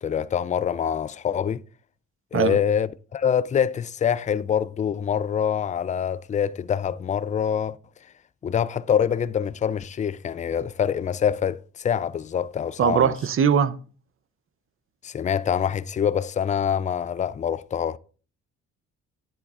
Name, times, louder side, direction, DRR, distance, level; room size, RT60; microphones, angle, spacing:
voice 1, 0.0-1.6 2.3-7.8 8.4-13.1 15.0-18.0, left 8 dB, 25° left, 0.4 m, -25 dB
voice 2, 12.8-13.7, right 7 dB, 45° right, 0.7 m, -20 dB
10.5 x 10.0 x 2.4 m
cardioid pair, 90°, 30 cm